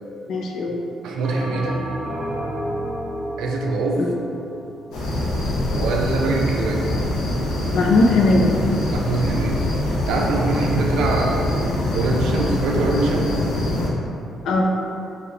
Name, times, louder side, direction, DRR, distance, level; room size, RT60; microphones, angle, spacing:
voice 1, 0.3-0.8 4.0-4.1 7.7-8.6 14.5-14.7, left 2 dB, 60° left, 0 dB, 0.4 m, -18 dB
voice 2, 1.0-1.8 3.4-4.0 5.7-6.9 8.9-9.6 10.1-11.5 11.9-13.3, right 3 dB, 80° right, 0 dB, 0.4 m, -23 dB
Bell, 1.2-5.8, equal, 10° right, 0.7 m, -31 dB
sound 1, 4.9-13.9, left 1 dB, 80° left, 0.8 m, -24 dB
3.1 x 2.9 x 3.6 m, 2.7 s
cardioid pair, 175°, 0 cm